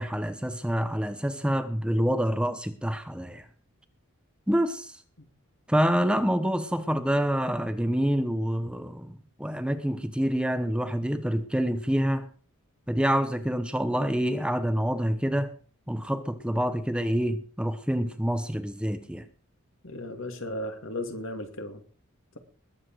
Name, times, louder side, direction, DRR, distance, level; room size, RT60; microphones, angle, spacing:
voice 1, 0.0-3.5 4.5-5.0 5.7-9.1 9.4-12.3 12.9-15.5 15.9-19.3, equal, 5° right, 1.0 m, -27 dB
voice 2, 19.8-21.8, left 1 dB, 60° left, 2.5 m, -35 dB
21.0 x 8.4 x 4.8 m
head